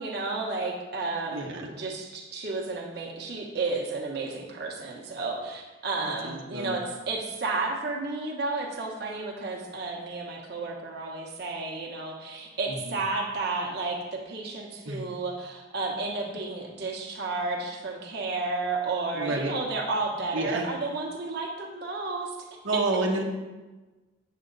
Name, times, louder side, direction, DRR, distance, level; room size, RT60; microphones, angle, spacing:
voice 1, 0.0-1.5 1.8-22.3, right 3 dB, 55° right, -1 dB, 1.2 m, -32 dB
voice 2, 1.3-1.7 6.0-6.8 12.7-13.0 14.8-15.0 19.1-19.5 20.3-20.7 22.6-23.2, right 2 dB, 90° right, 0 dB, 1.3 m, -30 dB
7.9 x 7.9 x 4.0 m, 1.2 s
head